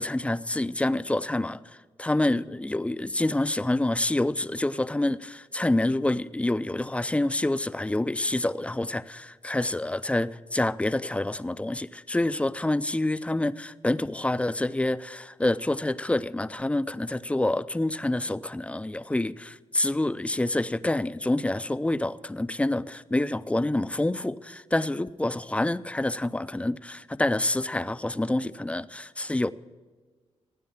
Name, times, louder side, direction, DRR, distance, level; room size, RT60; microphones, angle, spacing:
voice 1, 0.0-1.6 2.0-29.5, left 1 dB, 10° left, 0.5 m, -27 dB
16.5 x 9.6 x 7.2 m
cardioid pair, 95°, 11 cm